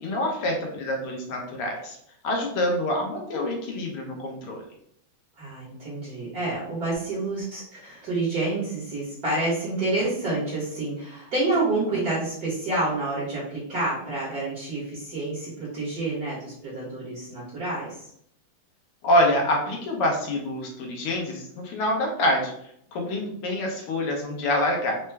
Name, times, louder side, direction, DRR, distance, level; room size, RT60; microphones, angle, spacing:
voice 1, 0.0-2.0 2.2-4.6 19.0-22.5 22.9-25.0, left 1 dB, 85° left, 1 dB, 1.9 m, -26 dB
voice 2, 5.4-18.0, right 2 dB, 50° right, -8 dB, 1.4 m, -28 dB
4.4 x 2.2 x 3.3 m, 0.68 s
omnidirectional pair, 2.4 m